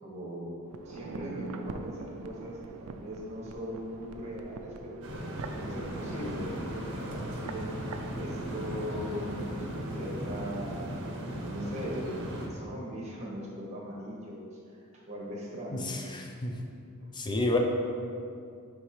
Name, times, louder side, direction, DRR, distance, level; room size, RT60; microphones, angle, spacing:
voice 1, 0.0-7.6 8.2-10.7 11.4-15.9 17.0-17.1, equal, 30° right, -4 dB, 1.4 m, -40 dB
sound 1, 0.7-9.7 10.0-10.1, right 4 dB, 70° right, 0.4 m, -44 dB
sound 2, 5.0-12.5, right 1 dB, 55° right, 0.8 m, -37 dB
voice 2, 15.7-16.6 17.1-17.6, left 2 dB, 20° left, 1 dB, 0.5 m, -30 dB
9.6 x 3.4 x 3.2 m, 2.5 s
head